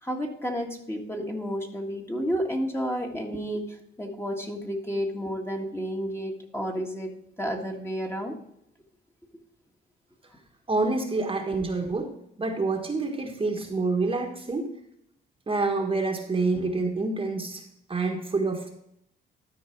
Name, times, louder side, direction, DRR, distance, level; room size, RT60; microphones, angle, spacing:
voice 1, 0.0-7.1 7.4-8.3, equal, 10° left, 1 dB, 1.7 m, -31 dB
voice 2, 10.7-12.1 12.4-14.7 15.5-17.6 17.9-18.7, right 3 dB, 25° right, 3 dB, 1.4 m, -27 dB
12.5 x 4.7 x 4.5 m, 0.77 s
cardioid pair, 90°, 20 cm